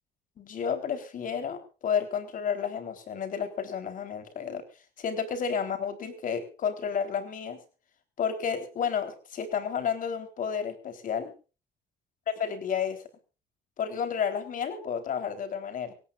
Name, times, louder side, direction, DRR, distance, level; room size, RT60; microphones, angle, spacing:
voice 1, 0.4-4.6 5.0-7.6 8.2-11.3 12.3-13.0 13.8-15.9, left 7 dB, 55° left, 8 dB, 4.0 m, -31 dB
24.5 x 17.5 x 2.6 m, 0.34 s
cardioid pair, 110°, 17 cm